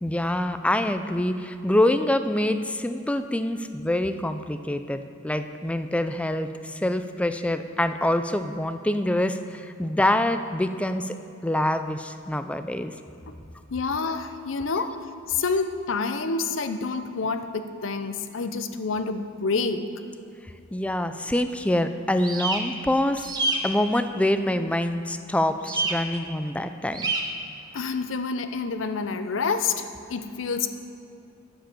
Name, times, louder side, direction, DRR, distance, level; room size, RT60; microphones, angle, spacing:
voice 1, 0.0-11.2 11.4-12.9 20.7-23.3 23.6-27.0, left 1 dB, 5° left, 9 dB, 0.4 m, -25 dB
voice 2, 13.7-15.0 15.3-19.9 27.7-30.7, left 4 dB, 75° left, 9 dB, 0.7 m, -28 dB
sound 1, 22.2-22.6 23.2-23.6 25.6-25.9 26.9-27.2, right 3 dB, 20° right, 0.9 m, -26 dB
10.5 x 7.3 x 6.8 m, 2.6 s
head